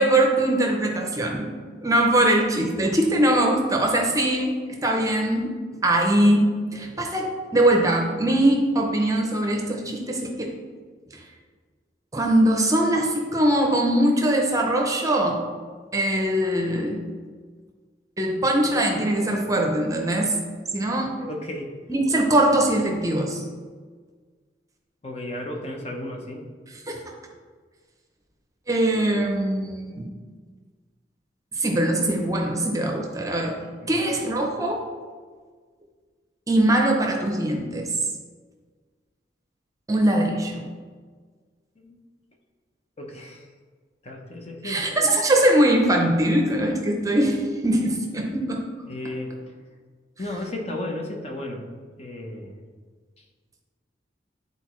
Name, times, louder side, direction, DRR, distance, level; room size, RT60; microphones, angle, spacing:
voice 1, 0.0-1.5 1.8-4.5 4.8-5.5 5.8-6.4 6.7-10.5 11.1-11.2 12.1-15.4 15.9-17.0 18.2-20.3 20.7-21.1 21.9-23.4 26.9-27.0 28.7-30.1 31.5-33.6 33.9-34.8 36.5-37.9 39.9-40.6 44.6-48.6, right 1 dB, 20° right, 1 dB, 0.7 m, -21 dB
voice 2, 21.2-21.8 25.0-26.5 33.8-34.0 41.8-42.0 43.0-43.5 44.0-44.9 48.9-49.6 50.2-51.7 52.0-52.5, left 1 dB, 35° left, 1 dB, 0.8 m, -34 dB
10.5 x 4.0 x 3.1 m, 1.6 s
head